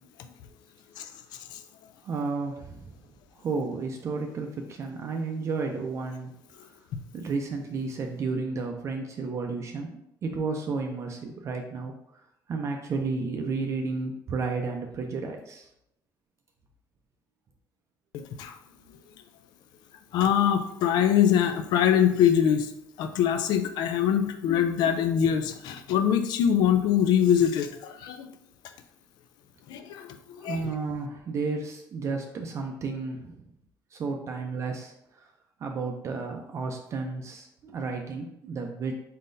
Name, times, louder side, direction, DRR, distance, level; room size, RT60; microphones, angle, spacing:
voice 1, 2.0-2.8 3.4-6.3 7.1-11.9 12.5-15.7 30.4-33.4 33.9-35.2 35.6-39.0, right 4 dB, 40° right, 3 dB, 0.4 m, -32 dB
voice 2, 18.1-18.6 20.1-22.7 23.0-28.3 29.7-30.7, left 9 dB, 75° left, 8 dB, 0.4 m, -24 dB
4.1 x 3.8 x 2.6 m, 0.79 s
cardioid pair, 125°, 7 cm